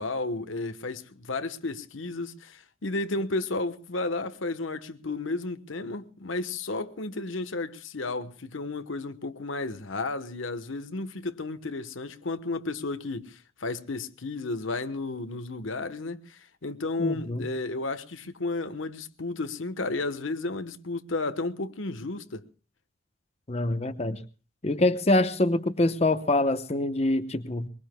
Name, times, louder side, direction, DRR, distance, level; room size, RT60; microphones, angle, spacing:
voice 1, 0.0-22.4, left 3 dB, 80° left, 1.1 m, -33 dB
voice 2, 17.0-17.4 23.5-24.2 24.6-27.7, left 2 dB, 30° left, 0.8 m, -25 dB
23.5 x 22.0 x 2.2 m
head